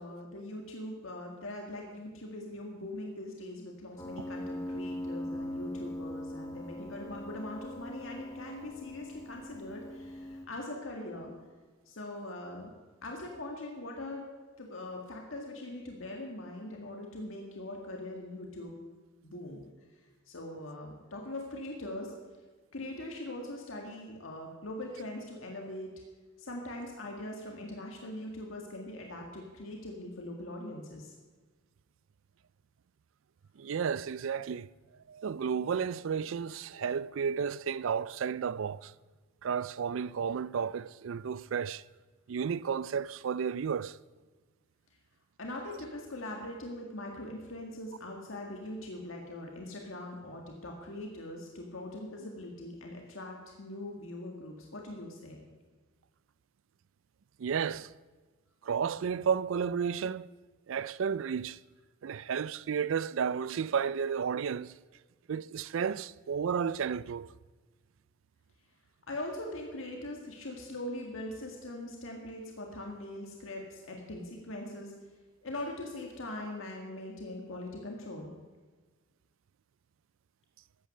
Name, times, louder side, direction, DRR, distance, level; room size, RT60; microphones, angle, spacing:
voice 1, 0.0-11.3 11.9-12.7 13.0-14.3 14.6-18.7 19.2-19.6 20.3-22.1 22.7-25.9 26.4-31.1 45.4-55.4 69.1-74.9 75.4-78.3, left 1 dB, 75° left, 1.8 m, -41 dB
Piano, 4.0-10.5, left 1 dB, 15° left, 1.3 m, -41 dB
voice 2, 33.6-34.7 35.1-38.9 39.4-41.8 42.3-44.0 57.4-57.9 58.6-60.3 60.7-61.6 62.0-64.7 65.3-67.3, right 7 dB, 70° right, 0.4 m, -32 dB
14.5 x 8.8 x 6.6 m
head